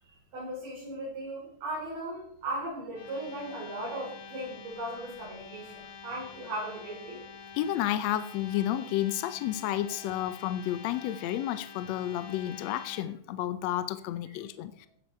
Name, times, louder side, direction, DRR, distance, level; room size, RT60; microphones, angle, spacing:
voice 1, 0.0-7.2, right 1 dB, 90° right, -6 dB, 6.5 m, -37 dB
sound 1, 2.9-13.0, left 6 dB, 55° left, 1.6 m, -47 dB
voice 2, 7.5-14.9, left 12 dB, 75° left, 12 dB, 1.7 m, -31 dB
16.0 x 11.5 x 4.4 m, 0.66 s
omnidirectional pair, 3.7 m